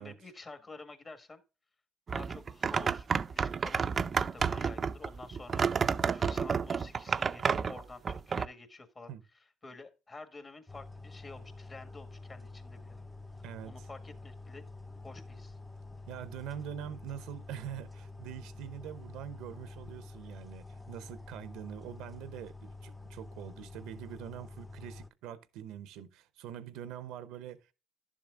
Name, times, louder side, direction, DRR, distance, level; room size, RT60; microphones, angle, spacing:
voice 1, 0.0-1.4 2.1-9.1 9.3-13.0 13.6-14.7 15.0-15.6, left 3 dB, 35° left, 1.7 m, -50 dB
sound 1, 2.1-8.5, right 6 dB, 45° right, 0.4 m, -30 dB
sound 2, 10.7-25.1, left 3 dB, 15° left, 0.5 m, -48 dB
voice 2, 13.4-13.7 16.1-27.7, right 10 dB, 85° right, 0.7 m, -44 dB
11.5 x 7.3 x 2.4 m
supercardioid pair, 70°, 0 cm